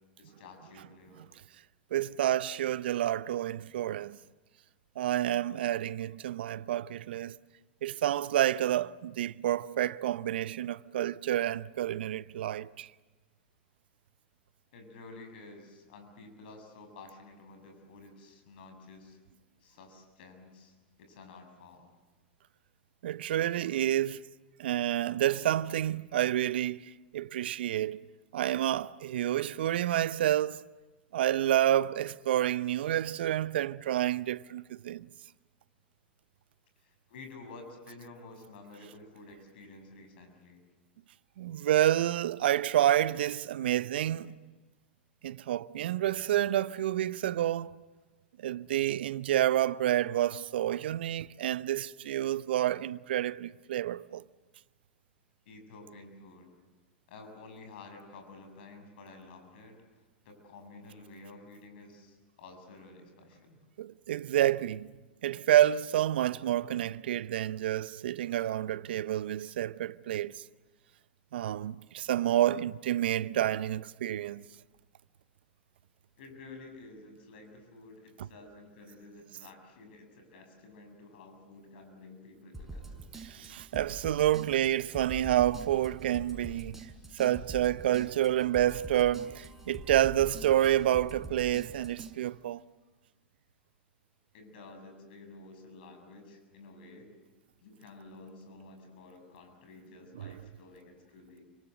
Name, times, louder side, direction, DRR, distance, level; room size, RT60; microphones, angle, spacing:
voice 1, 0.2-1.3 5.6-5.7 14.7-19.2 19.6-21.9 32.9-33.0 34.4-34.5 36.8-40.6 44.2-44.4 46.0-46.1 50.4-50.5 55.5-56.5 57.1-59.7 60.2-63.6 76.2-83.1 94.3-97.1 97.6-101.4, left 3 dB, 65° left, 7.1 m, -51 dB
voice 2, 1.9-4.2 5.0-7.4 7.8-12.9 23.0-24.2 24.6-30.7 31.1-35.1 41.4-44.4 45.2-47.7 48.4-54.2 63.8-64.9 65.2-70.4 71.3-74.4 83.1-92.6 100.1-100.4, right 12 dB, 70° right, 0.8 m, -29 dB
sound 1, 82.5-92.1, right 2 dB, 5° right, 6.4 m, -45 dB
29.5 x 25.0 x 7.9 m
hypercardioid pair, 95°, 6 cm